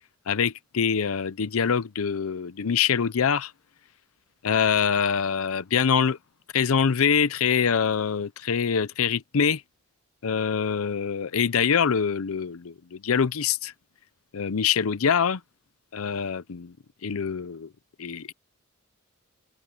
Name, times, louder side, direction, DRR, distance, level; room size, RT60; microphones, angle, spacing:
voice 1, 0.3-3.5 4.4-6.2 6.5-9.6 10.2-13.7 14.3-15.4 15.9-16.7 17.0-17.7 18.0-18.3, left 7 dB, 75° left, 0.6 m, -24 dB
open air
head